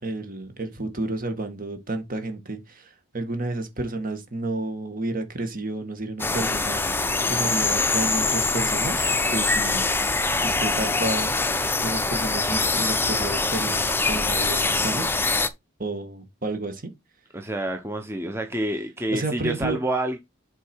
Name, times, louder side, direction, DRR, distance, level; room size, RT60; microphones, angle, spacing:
voice 1, 0.0-6.8 7.2-9.9 10.4-11.3 11.8-15.1 15.8-16.9 19.1-19.8, right 2 dB, 45° right, 2.0 m, -31 dB
sound 1, 6.2-15.5, left 3 dB, 10° left, 0.7 m, -24 dB
voice 2, 17.3-20.2, right 1 dB, 15° right, 1.0 m, -28 dB
8.2 x 4.6 x 4.6 m
head